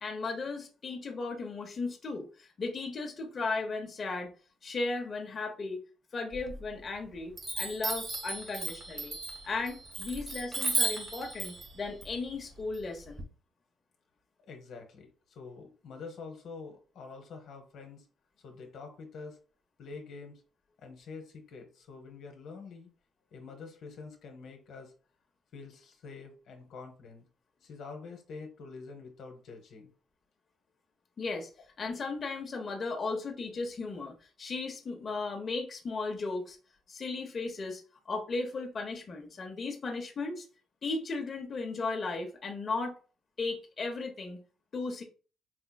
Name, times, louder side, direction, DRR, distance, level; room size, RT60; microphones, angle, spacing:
voice 1, 0.0-4.3 4.6-5.8 6.1-9.2 9.4-13.3 31.2-31.5 31.8-36.6 36.9-40.5 40.8-42.9 43.4-44.4 44.7-45.0, left 3 dB, 40° left, 2 dB, 0.8 m, -36 dB
Chime, 6.3-7.0 7.4-13.2, right 2 dB, 30° right, 0.9 m, -35 dB
voice 2, 14.5-18.0 18.4-19.4 19.8-20.4 20.8-22.9 23.3-24.9 25.5-27.2 27.6-29.9 33.1-33.2, left 4 dB, 75° left, 4 dB, 0.9 m, -46 dB
4.2 x 2.9 x 2.2 m, 0.37 s
cardioid pair, 90°, 0 cm